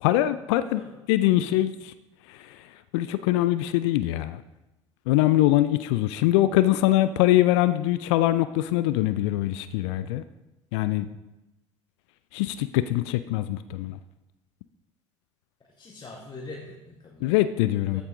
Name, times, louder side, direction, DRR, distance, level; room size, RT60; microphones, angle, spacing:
voice 1, 0.0-0.8 1.1-1.9 2.9-4.4 5.1-10.2 10.7-11.1 12.3-14.0 17.2-18.0, left 15 dB, 65° left, 13 dB, 0.5 m, -23 dB
voice 2, 15.8-17.4 17.9-18.0, left 3 dB, 30° left, -2 dB, 1.8 m, -43 dB
13.0 x 8.1 x 3.9 m, 0.97 s
figure-of-eight pair, 60°, 16 cm